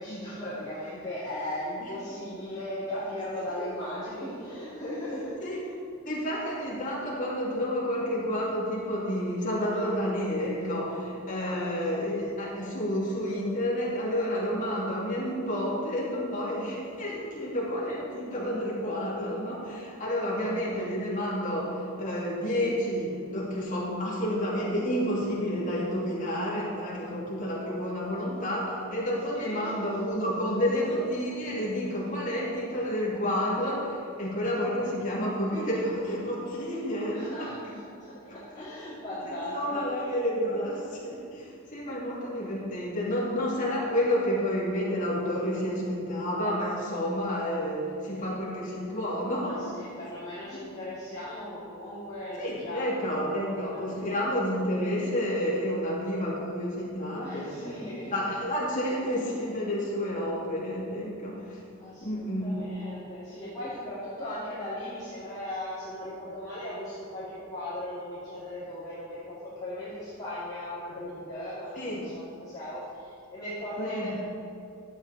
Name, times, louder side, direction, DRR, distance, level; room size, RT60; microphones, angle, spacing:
voice 1, 0.0-5.4 11.4-12.0 29.3-29.7 37.0-39.8 49.4-53.3 53.6-54.1 57.2-58.1 61.8-74.2, left 1 dB, 20° left, -13 dB, 2.8 m, -38 dB
voice 2, 1.8-2.2 3.5-3.7 5.4-5.6 6.0-37.5 38.1-38.6 39.2-49.7 52.4-61.6 62.0-62.7 71.7-72.0 73.8-74.2, equal, 35° left, -6 dB, 2.8 m, -30 dB
12.0 x 8.4 x 4.3 m, 2.5 s
head